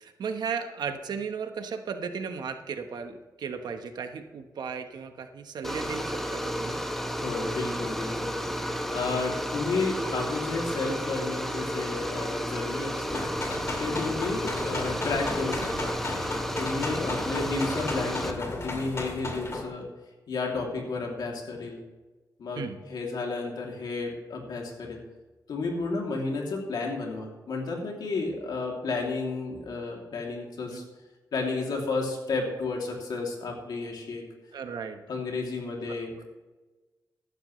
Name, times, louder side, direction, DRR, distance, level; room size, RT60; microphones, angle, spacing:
voice 1, 0.0-6.8 14.0-14.1 22.6-22.8 30.7-30.9 34.5-35.0 36.2-36.3, right 6 dB, 80° right, 7 dB, 1.2 m, -35 dB
sound 1, 5.6-18.3, equal, 5° left, 1.3 m, -32 dB
voice 2, 7.1-8.3 8.9-13.3 13.8-15.9 16.5-19.8 20.3-21.8 22.4-25.0 25.5-30.8 31.3-34.2 35.1-36.2, left 3 dB, 75° left, 0 dB, 2.8 m, -32 dB
sound 2, 13.1-19.6, left 2 dB, 40° left, 2.3 m, -35 dB
14.5 x 11.5 x 3.2 m, 1.2 s
cardioid pair, 80°, 7 cm